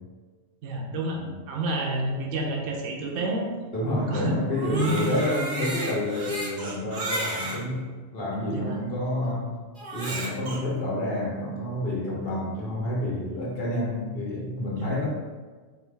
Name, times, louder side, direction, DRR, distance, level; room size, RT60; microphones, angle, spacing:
voice 1, 0.6-1.2 1.5-3.5 4.1-4.3 4.7-5.2 8.5-8.8 14.8-14.9, right 2 dB, 80° right, 0 dB, 1.0 m, -29 dB
voice 2, 3.7-9.5 9.9-15.1, left 1 dB, 50° left, -4 dB, 1.2 m, -29 dB
Crying sobbing, 4.5-7.6 8.3-8.4 9.8-10.6, right 2 dB, 45° right, 0.9 m, -33 dB
4.4 x 2.6 x 3.3 m, 1.4 s
omnidirectional pair, 1.3 m